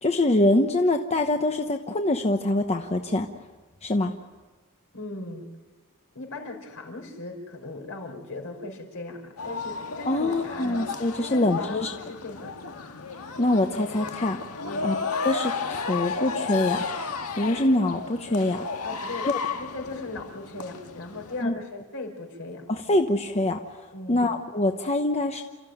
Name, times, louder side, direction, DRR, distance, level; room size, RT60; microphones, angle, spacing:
voice 1, 0.0-3.3 3.8-4.1 10.1-11.9 13.4-14.4 14.8-15.0 15.2-16.8 17.4-18.6 19.2-19.4 21.4-21.5 22.7-25.4, left 1 dB, 30° left, 4 dB, 1.0 m, -24 dB
voice 2, 4.9-5.5 6.1-10.8 11.2-12.5 14.6-15.0 18.8-22.7 23.9-24.3, left 2 dB, 65° left, 2 dB, 5.0 m, -38 dB
sound 1, 9.4-21.4, left 4 dB, 85° left, 1.7 m, -33 dB
29.0 x 14.5 x 9.4 m, 1.3 s
head